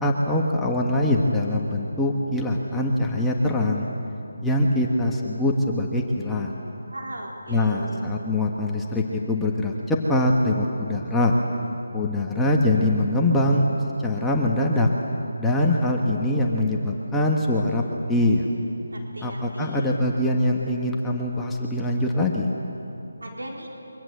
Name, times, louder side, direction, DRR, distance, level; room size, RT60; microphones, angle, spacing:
voice 1, 0.0-3.9 4.4-6.5 7.5-11.4 11.9-13.6 14.0-14.9 15.4-17.8 18.1-18.5 19.2-22.5, left 1 dB, 5° left, -2 dB, 1.5 m, -23 dB
voice 2, 6.9-8.1 18.9-20.0 23.2-23.7, right 1 dB, 85° right, -1 dB, 4.3 m, -38 dB
27.5 x 24.5 x 8.0 m, 2.8 s
figure-of-eight pair, 165°, 0 cm